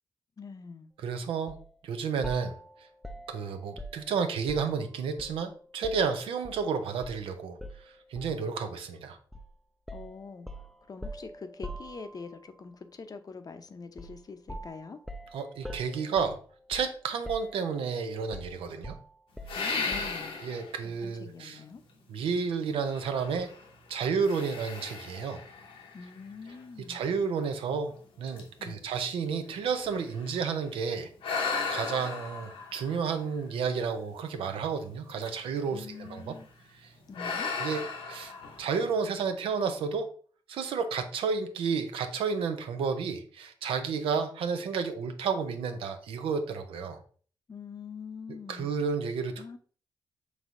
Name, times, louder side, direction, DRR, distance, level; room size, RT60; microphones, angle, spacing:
voice 1, 0.4-0.9 9.9-10.5 10.9-15.0 19.5-20.4 21.0-21.8 25.9-27.0 28.6-28.8 35.7-36.5 37.1-37.5 47.5-48.7 49.4-49.6, left 5 dB, 45° left, 0.6 m, -44 dB
voice 2, 1.0-1.6 1.8-2.6 3.3-7.6 8.1-9.2 15.3-16.4 16.7-19.0 20.4-21.6 22.1-23.5 23.9-25.4 26.9-31.1 31.7-36.4 36.8-36.9 37.6-38.3 38.6-40.1 40.5-47.0 48.3-49.6, right 5 dB, 85° right, 0.5 m, -31 dB
sound 1, 1.5-1.7 2.2-4.8 5.2-6.7 7.0-7.2 7.6-8.5 9.3-9.5 9.9-12.4 14.0-14.2 14.5-17.0 17.2-17.9 18.3-20.3, equal, ahead, 0.4 m, -44 dB
sound 2, 19.5-20.8 21.4-21.5 22.8-23.7 24.2-26.6 27.3-27.4 27.9-28.0 28.3-30.6 31.2-33.9 35.1-35.6 35.9-36.2 37.1-39.0, left 4 dB, 85° left, 0.8 m, -36 dB
5.2 x 3.1 x 2.5 m
cardioid pair, 60°, 9 cm